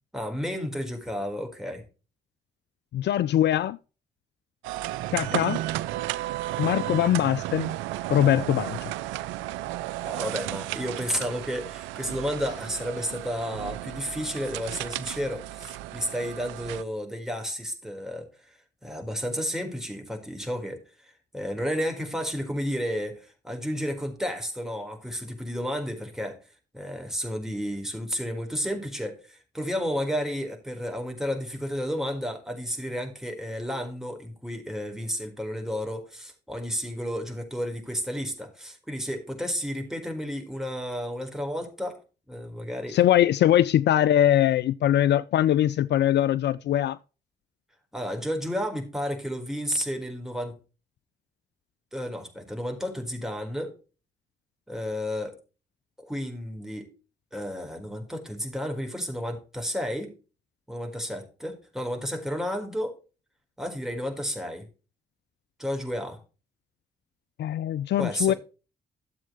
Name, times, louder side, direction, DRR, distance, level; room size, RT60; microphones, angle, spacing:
voice 1, 0.1-1.8 10.0-18.6 18.8-26.4 26.7-42.0 42.3-43.0 47.9-50.6 51.9-53.7 54.7-55.4 56.0-56.9 57.3-60.1 60.7-62.9 63.6-64.7 65.6-66.2 68.0-68.4, equal, ahead, 4.4 m, -32 dB
voice 2, 2.9-3.8 5.1-5.6 6.6-7.7 8.1-8.9 42.9-47.0 67.4-68.3, left 11 dB, 60° left, 0.5 m, -22 dB
sound 1, 4.6-16.8, right 15 dB, 80° right, 0.5 m, -33 dB
13.5 x 7.5 x 3.1 m
hypercardioid pair, 40°, 20 cm